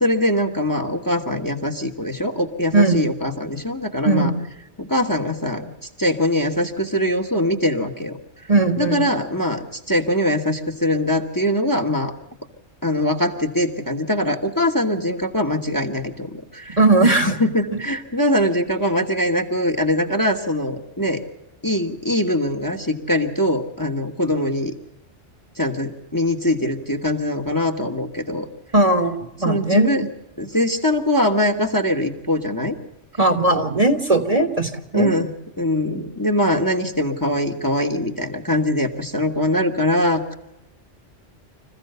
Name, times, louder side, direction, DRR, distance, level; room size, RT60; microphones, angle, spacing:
voice 1, 0.0-4.3 4.8-5.7 6.0-8.2 8.8-12.1 12.8-21.2 21.6-24.7 25.6-28.5 29.4-30.1 30.4-32.8 34.9-35.3 35.6-40.4, left 1 dB, 15° left, 3 dB, 1.4 m, -22 dB
voice 2, 8.5-9.0 16.8-17.3 17.7-17.8 28.7-29.9 33.2-35.1, right 2 dB, 30° right, 7 dB, 1.5 m, -18 dB
26.5 x 15.0 x 6.8 m, 0.93 s
omnidirectional pair, 1.2 m